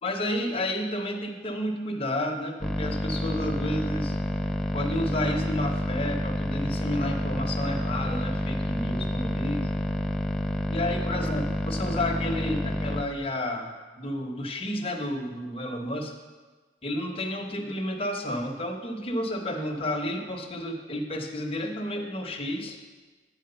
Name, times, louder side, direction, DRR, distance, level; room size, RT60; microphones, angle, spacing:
voice 1, 0.0-4.2 4.7-9.7 10.7-16.1 16.8-22.8, left 1 dB, 30° left, 2 dB, 0.9 m, -31 dB
sound 1, 2.6-13.0, equal, ahead, 0.4 m, -29 dB
8.8 x 4.6 x 6.7 m, 1.3 s
head